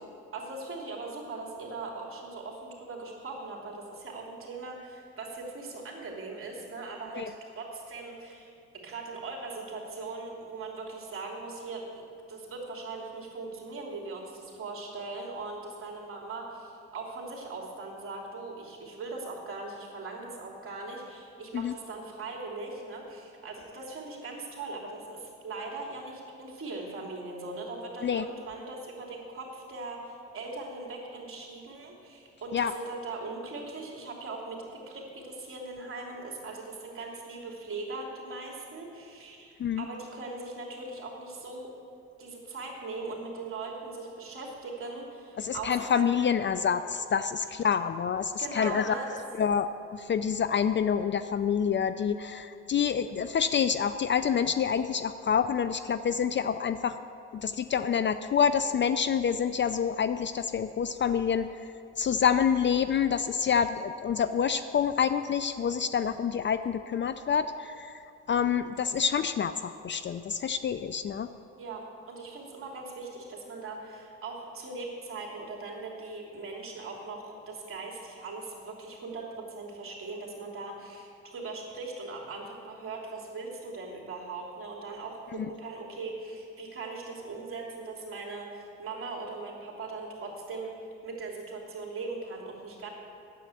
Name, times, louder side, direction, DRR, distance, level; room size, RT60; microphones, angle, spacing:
voice 1, 0.3-41.7 42.2-46.0 48.4-49.2 71.6-92.9, right 3 dB, 45° right, -2 dB, 3.0 m, -40 dB
voice 2, 45.4-48.9 49.4-57.0 57.3-61.5 62.0-67.9 68.3-71.3 85.4-85.5, left 7 dB, 40° left, 12 dB, 0.4 m, -27 dB
9.2 x 7.6 x 8.3 m, 2.5 s
cardioid pair, 90°, 30 cm